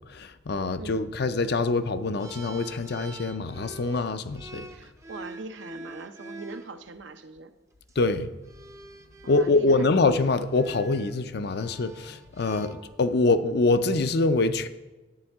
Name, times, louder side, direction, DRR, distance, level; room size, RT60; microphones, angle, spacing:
voice 1, 0.1-4.7 8.0-8.3 9.3-14.7, left 3 dB, 60° left, 0.5 m, -25 dB
sound 1, 2.2-6.7 7.7-7.9 8.4-13.3, right 2 dB, 15° right, 0.6 m, -46 dB
voice 2, 4.7-7.5 9.2-10.1 12.5-12.8, right 3 dB, 75° right, 0.7 m, -42 dB
11.0 x 8.8 x 3.5 m
head